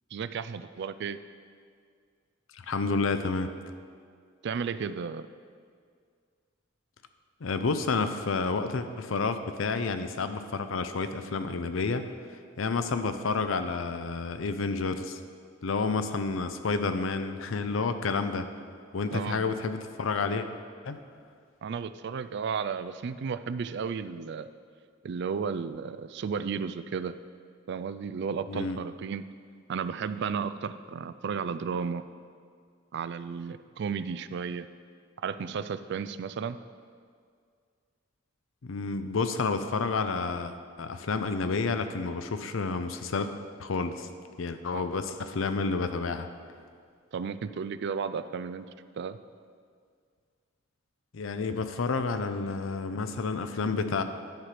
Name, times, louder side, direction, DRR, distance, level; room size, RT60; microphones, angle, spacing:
voice 1, 0.1-1.2 4.4-5.3 19.1-19.4 21.6-24.5 25.0-27.1 27.7-29.3 29.7-32.0 32.9-34.7 35.2-36.6 44.7-44.8 47.1-48.7 49.0-49.2, right 6 dB, 60° right, 13 dB, 0.3 m, -33 dB
voice 2, 2.5-3.5 7.4-12.1 12.6-15.2 15.6-18.5 18.9-20.5 20.8-21.0 28.5-28.8 38.6-40.5 40.8-43.3 43.6-44.1 44.4-46.3 51.1-54.0, left 4 dB, 75° left, 9 dB, 0.6 m, -30 dB
10.5 x 5.9 x 4.9 m, 2.1 s
head